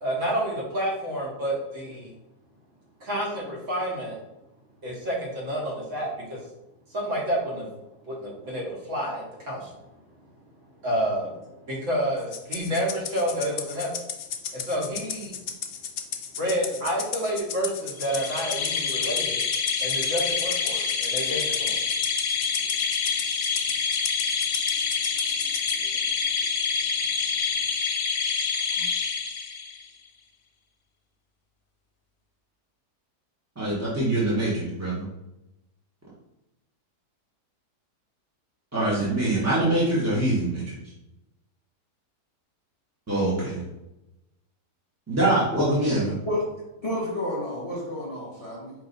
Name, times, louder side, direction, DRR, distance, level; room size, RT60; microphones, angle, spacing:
voice 1, 0.0-2.1 3.0-4.2 4.8-6.4 6.9-7.7 8.0-9.8 10.8-14.1 14.5-15.4 16.4-19.4 19.8-21.8 25.4-25.5 25.8-26.1, equal, 55° right, -3 dB, 1.2 m, -29 dB
Rattle (instrument), 12.3-25.8, left 8 dB, 80° left, 0.6 m, -34 dB
sound 1, 18.0-29.9, left 6 dB, 65° left, 1.0 m, -27 dB
voice 2, 33.6-35.1 38.7-40.8 43.1-43.6 45.1-46.2, right 1 dB, 15° right, -8 dB, 0.7 m, -24 dB
voice 3, 46.8-48.7, left 1 dB, 25° left, -6 dB, 1.3 m, -30 dB
4.7 x 2.8 x 3.9 m, 0.94 s
omnidirectional pair, 1.7 m